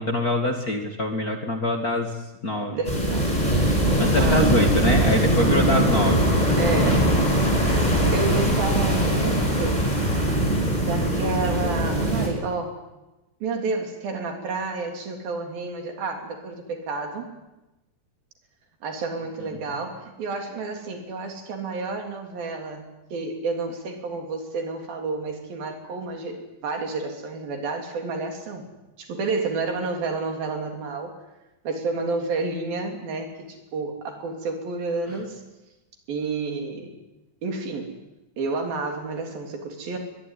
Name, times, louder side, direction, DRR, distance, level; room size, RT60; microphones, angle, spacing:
voice 1, 0.0-2.1 2.4-2.8 3.3-3.5 4.0-6.3 6.8-7.0, left 1 dB, 30° left, 4 dB, 2.0 m, -24 dB
voice 2, 2.7-3.4 4.1-4.9 6.6-9.9 10.8-12.8 13.4-17.3 18.8-28.7 29.0-31.1 31.6-35.4 36.1-36.9 37.4-37.9 38.4-40.0, right 3 dB, 80° right, 3 dB, 5.1 m, -30 dB
sound 1, 2.9-12.3, right 1 dB, 10° left, 6.1 m, -21 dB
22.5 x 21.5 x 9.9 m, 1.0 s
omnidirectional pair, 4.1 m